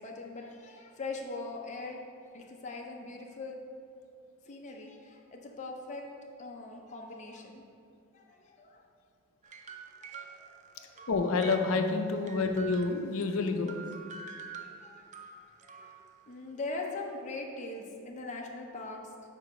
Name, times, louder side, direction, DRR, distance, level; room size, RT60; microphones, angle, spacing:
voice 1, 0.0-3.6 4.4-6.0 6.4-7.6 8.1-8.8 10.0-11.1 14.6-15.1 15.7-15.9 16.3-19.0, left 3 dB, 35° left, 0 dB, 0.6 m, -41 dB
sound 1, 9.4-13.3 13.7-16.3, right 5 dB, 35° right, 0.4 m, -47 dB
voice 2, 11.1-13.7, left 3 dB, 80° left, 6 dB, 0.5 m, -28 dB
4.8 x 4.5 x 4.9 m, 2.5 s
head